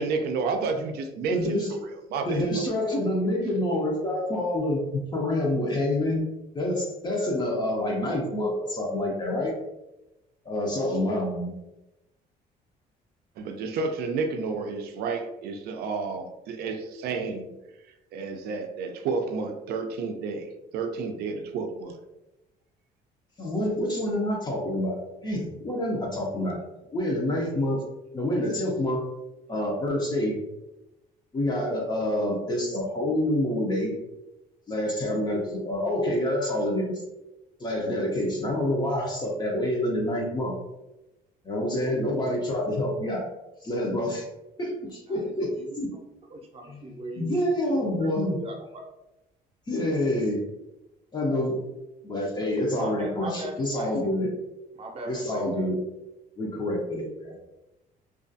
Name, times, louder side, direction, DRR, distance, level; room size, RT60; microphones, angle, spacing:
voice 1, 0.0-2.7 13.4-17.5 18.1-22.0, right 4 dB, 70° right, 5 dB, 0.4 m, -31 dB
voice 2, 1.3-1.7 2.3-6.2 6.5-9.5 10.5-11.5 23.4-26.6 26.9-27.8 28.1-29.0 29.5-30.4 31.3-33.9 34.7-37.0 37.6-40.5 41.4-43.3 43.6-44.2 44.6-45.5 45.8-45.9 46.7-46.8 47.2-48.4 49.7-50.4 51.1-51.6 52.0-54.3 55.1-55.8 56.4-57.4, left 1 dB, 25° left, -1 dB, 0.5 m, -27 dB
voice 3, 45.1-45.8 46.3-48.6 52.7-54.3 54.7-55.8, right 1 dB, 35° right, 1 dB, 0.6 m, -39 dB
2.3 x 2.3 x 2.5 m, 0.96 s
cardioid pair, 110°, 17 cm